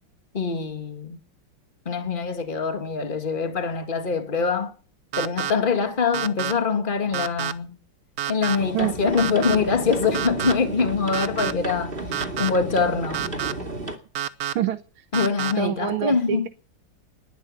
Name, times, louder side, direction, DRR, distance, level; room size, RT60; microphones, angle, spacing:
voice 1, 0.3-1.2 1.9-4.7 5.2-7.8 8.3-11.9 12.4-13.3 15.1-16.5, left 5 dB, 25° left, 2.1 m, -24 dB
sound 1, 5.1-5.5 6.1-6.5 7.1-7.5 8.2-8.6 9.2-9.6 10.1-10.5 11.1-11.5 12.1-12.5 13.1-13.5 14.1-14.5 15.1-15.5, right 10 dB, 55° right, 1.2 m, -28 dB
sound 2, 8.6-14.0, right 2 dB, 25° right, 2.6 m, -33 dB
voice 2, 14.5-15.0 15.6-16.5, right 10 dB, 85° right, 1.8 m, -26 dB
20.5 x 11.5 x 5.5 m
omnidirectional pair, 2.2 m